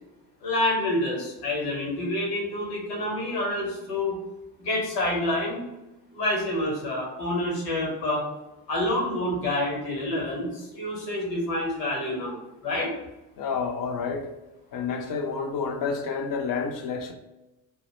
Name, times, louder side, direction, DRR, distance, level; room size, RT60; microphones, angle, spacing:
voice 1, 0.4-4.2 4.6-5.6 6.1-8.2 8.7-12.4 12.6-12.9, left 1 dB, 75° left, 1.2 m, -28 dB
voice 2, 13.4-14.3 14.7-17.1, left 5 dB, 45° left, 0.7 m, -29 dB
2.8 x 2.1 x 4.0 m
figure-of-eight pair, 45°, 48 cm